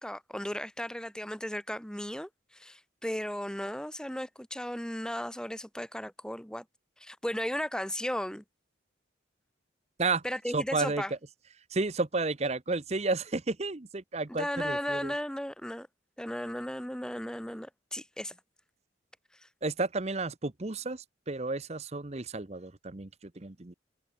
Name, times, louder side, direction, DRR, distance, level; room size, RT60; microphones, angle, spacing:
voice 1, 0.0-6.6 7.0-8.4 10.2-11.1 14.3-15.9 16.2-18.3, equal, 5° left, 1.5 m, -35 dB
voice 2, 10.5-11.0 11.7-15.1 19.6-23.1 23.4-23.7, right 3 dB, 35° right, 0.9 m, -32 dB
head